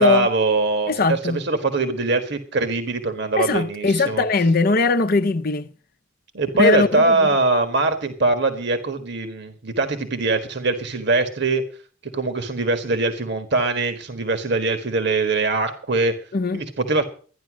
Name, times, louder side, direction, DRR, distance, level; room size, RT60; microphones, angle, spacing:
voice 1, 0.0-4.2 6.3-11.6 12.1-16.2 16.5-17.0, right 3 dB, 60° right, 1.5 m, -22 dB
voice 2, 0.9-1.4 3.4-5.7 6.6-7.3 16.3-16.6, left 3 dB, 50° left, 0.7 m, -20 dB
13.5 x 10.5 x 6.2 m
head